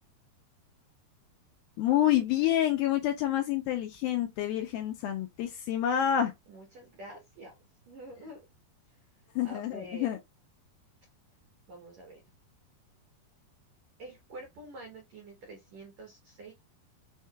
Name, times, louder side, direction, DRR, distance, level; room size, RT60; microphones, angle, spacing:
voice 1, 1.8-6.3 9.4-10.2, left 11 dB, 80° left, 2.2 m, -28 dB
voice 2, 6.5-7.5 7.9-8.4 9.4-10.1 11.7-12.2 14.0-16.5, right 1 dB, 85° right, 1.5 m, -47 dB
6.4 x 2.8 x 2.2 m
omnidirectional pair, 4.7 m